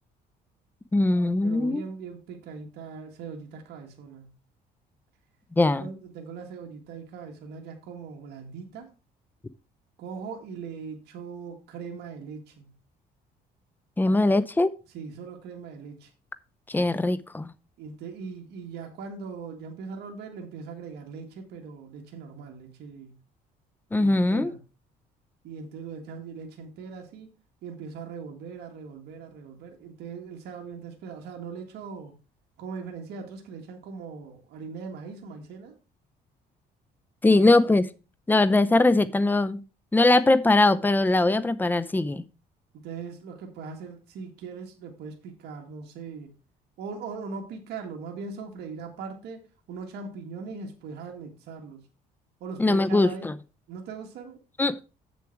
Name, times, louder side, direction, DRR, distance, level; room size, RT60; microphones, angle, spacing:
voice 1, 0.9-1.8 5.6-5.9 14.0-14.7 16.7-17.5 23.9-24.5 37.2-37.9 38.3-39.6 39.9-42.2 52.6-53.3 54.6-54.8, left 2 dB, 10° left, 0.6 m, -21 dB
voice 2, 1.4-4.3 5.6-8.9 10.0-12.7 14.0-14.4 14.9-16.1 17.8-23.1 24.0-24.6 25.4-27.3 27.6-32.2 32.6-35.7 37.3-37.5 42.7-46.3 46.8-51.8 52.4-53.3 53.7-54.4, right 5 dB, 75° right, 1.8 m, -40 dB
7.5 x 7.1 x 4.5 m
cardioid pair, 110°, 17 cm